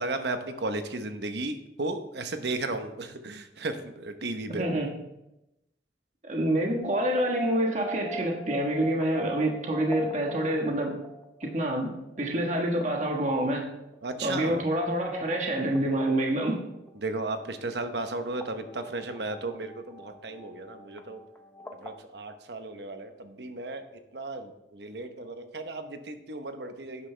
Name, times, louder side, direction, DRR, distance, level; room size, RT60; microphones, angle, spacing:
voice 1, 0.0-4.7 14.0-14.6 17.0-21.2 21.8-23.9 24.1-27.1, right 2 dB, 70° right, 7 dB, 1.0 m, -34 dB
voice 2, 4.6-4.9 6.2-11.0 11.4-13.7 14.2-16.6, right 1 dB, 40° right, 1 dB, 1.4 m, -27 dB
sound 1, 6.8-22.0, right 2 dB, 15° left, 0.8 m, -44 dB
11.5 x 9.6 x 3.4 m, 0.89 s
head